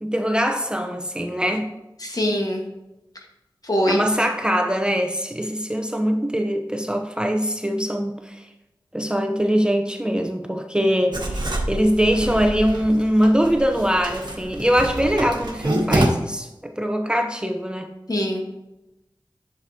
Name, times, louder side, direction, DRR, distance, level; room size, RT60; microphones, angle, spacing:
voice 1, 0.0-1.7 3.9-8.5 8.9-17.9, equal, 10° right, 4 dB, 0.7 m, -22 dB
voice 2, 2.0-2.6 3.7-4.0 18.1-18.4, equal, 50° left, 1 dB, 1.4 m, -22 dB
Writing, 11.1-16.1, right 1 dB, 60° right, 1.3 m, -27 dB
7.9 x 6.7 x 2.8 m, 0.96 s
wide cardioid pair, 45°, 8 cm